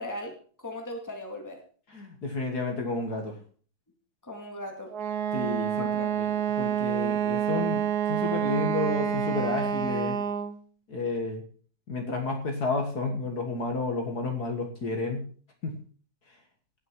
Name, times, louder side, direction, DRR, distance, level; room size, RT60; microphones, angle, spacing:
voice 1, 0.0-1.6 4.2-4.9 5.8-6.1, left 1 dB, 10° left, 2 dB, 2.3 m, -38 dB
voice 2, 1.9-3.4 5.3-6.3 6.6-10.2 10.9-11.4 11.9-15.3 15.6-15.8, left 3 dB, 55° left, 3 dB, 2.2 m, -31 dB
Wind instrument woodwind instrument, 4.9-10.6, right 9 dB, 60° right, 1.2 m, -28 dB
19.0 x 6.4 x 4.7 m, 0.43 s
omnidirectional pair, 2.2 m